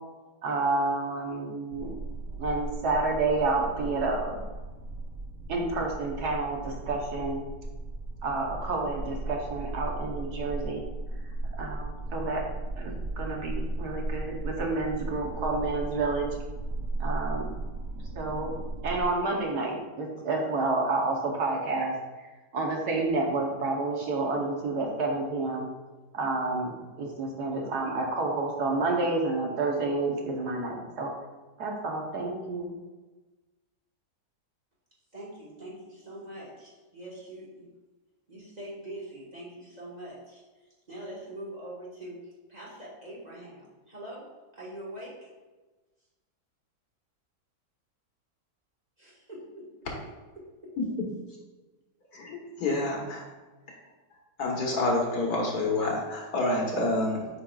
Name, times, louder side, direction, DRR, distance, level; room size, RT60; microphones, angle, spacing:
voice 1, 0.4-1.9 2.4-4.4 5.5-7.5 8.2-10.8 11.6-12.4 12.8-16.3 17.0-17.5 18.1-18.6 18.8-21.9 22.5-25.7 26.1-26.7 27.0-31.1 31.6-32.7, right 3 dB, 75° right, 0 dB, 1.5 m, -29 dB
sound 1, 1.7-19.0, right 2 dB, 55° right, 1.1 m, -36 dB
voice 2, 35.1-37.7 38.3-45.3 49.0-49.7 50.4-50.7, right 1 dB, 25° right, -6 dB, 1.6 m, -43 dB
voice 3, 52.1-53.2 54.4-57.3, left 2 dB, 70° left, -2 dB, 1.8 m, -28 dB
8.5 x 5.2 x 2.4 m, 1.2 s
omnidirectional pair, 1.7 m